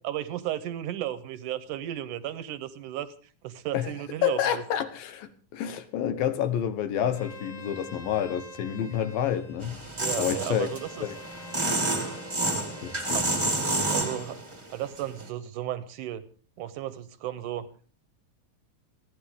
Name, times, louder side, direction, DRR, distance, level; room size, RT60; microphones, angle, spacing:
voice 1, 0.0-3.1 3.4-4.6 9.9-11.1 13.1-13.3 13.9-14.4 14.7-16.3 16.6-17.7, right 12 dB, 75° right, 14 dB, 2.1 m, -34 dB
voice 2, 4.2-9.8 10.2-10.7 11.0-11.2 12.8-13.2, left 10 dB, 85° left, 11 dB, 3.0 m, -29 dB
Bowed string instrument, 7.1-14.0, left 2 dB, 40° left, 2.4 m, -47 dB
sound 1, 9.6-14.6 15.0-15.2, right 2 dB, 15° right, 0.9 m, -29 dB
29.5 x 10.0 x 3.7 m, 0.40 s
omnidirectional pair, 4.0 m